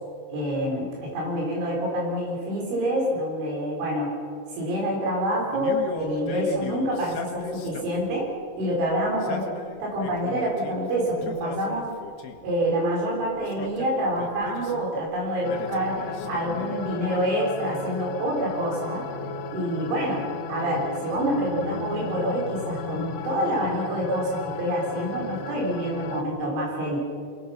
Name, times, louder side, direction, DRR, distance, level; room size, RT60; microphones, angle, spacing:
voice 1, 0.3-4.1 4.5-8.3 8.6-9.4 9.8-11.9 12.4-19.1 19.5-20.2 20.5-27.0, right 1 dB, 85° right, -3 dB, 6.8 m, -27 dB
Male speech man speaking, 5.5-8.1 9.0-10.8 11.2-12.5 13.4-14.9 15.5-17.0, left 6 dB, 65° left, 3.1 m, -38 dB
sound 1, 15.4-26.2, left 6 dB, 85° left, 3.6 m, -35 dB
28.5 x 20.0 x 5.9 m, 2.3 s
omnidirectional pair, 5.3 m